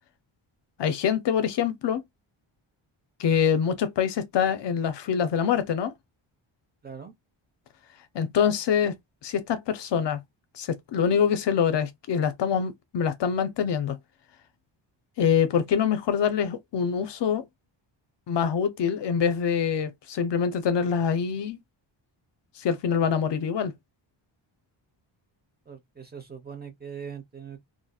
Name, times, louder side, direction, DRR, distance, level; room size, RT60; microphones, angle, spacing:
voice 1, 0.8-2.0 3.2-5.9 8.1-8.9 9.2-10.2 10.5-14.0 15.2-17.5 18.3-21.6 22.6-23.7, left 7 dB, 60° left, 0.6 m, -25 dB
voice 2, 6.8-7.1 25.7-27.7, right 7 dB, 20° right, 0.8 m, -41 dB
2.8 x 2.7 x 2.3 m
wide cardioid pair, 130°, 48 cm